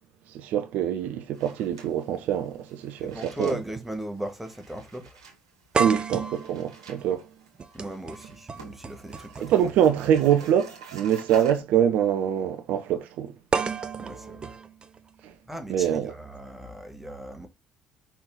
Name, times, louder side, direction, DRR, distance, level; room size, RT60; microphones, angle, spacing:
voice 1, 0.3-3.6 5.8-7.3 9.5-13.3 15.2-15.3 15.7-16.1, right 9 dB, 60° right, 0.8 m, -24 dB
sound 1, 1.3-11.6, right 5 dB, 80° right, 2.2 m, -49 dB
sound 2, 2.5-2.6 3.8-3.9 4.3-4.4 5.7-9.8 11.0-11.1 13.5-15.5, right 5 dB, 30° right, 0.9 m, -32 dB
voice 2, 3.0-5.2 7.7-9.5 14.0-14.6 15.5-17.5, right 1 dB, 5° right, 1.7 m, -37 dB
5.7 x 4.4 x 3.7 m
figure-of-eight pair, 55°, 3 cm